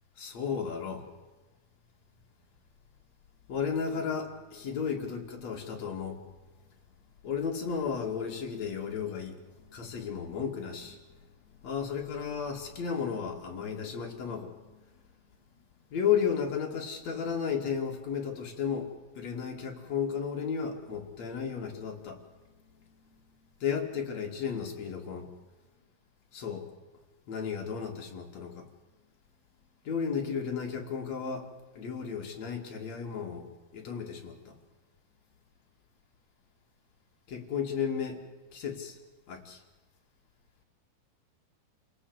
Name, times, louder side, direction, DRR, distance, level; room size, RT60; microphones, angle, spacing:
voice 1, 0.2-1.1 3.5-6.2 7.2-9.4 9.7-11.0 11.6-14.8 15.9-22.2 23.6-25.3 26.3-26.6 27.3-28.7 29.8-31.5 31.7-34.5 37.3-38.2 38.5-39.0 39.3-39.6, left 7 dB, 45° left, 1 dB, 3.0 m, -33 dB
28.0 x 18.0 x 8.1 m, 1.2 s
omnidirectional pair, 5.0 m